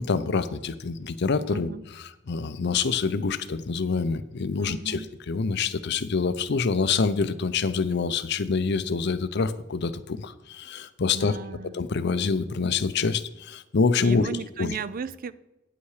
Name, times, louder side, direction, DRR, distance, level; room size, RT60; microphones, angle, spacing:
voice 1, 0.0-1.7 2.0-11.4 11.7-14.3 14.6-14.7, left 4 dB, 60° left, 0.6 m, -26 dB
voice 2, 1.5-1.8 4.6-5.1 11.1-11.8 14.0-15.3, right 5 dB, 45° right, 0.4 m, -35 dB
9.2 x 8.5 x 4.8 m
head